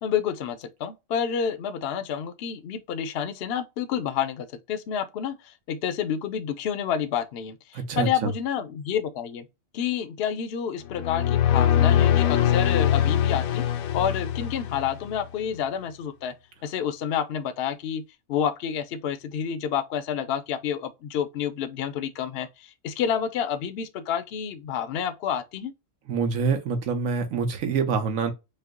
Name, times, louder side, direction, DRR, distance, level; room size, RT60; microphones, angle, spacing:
voice 1, 0.0-9.5 9.7-13.6 13.9-16.3 16.6-18.0 18.3-25.7, left 8 dB, 60° left, 0.7 m, -29 dB
voice 2, 7.7-8.3 26.1-28.3, right 5 dB, 75° right, 1.3 m, -26 dB
sound 1, 10.9-15.2, left 10 dB, 80° left, 1.0 m, -22 dB
5.6 x 2.1 x 3.6 m
omnidirectional pair, 1.4 m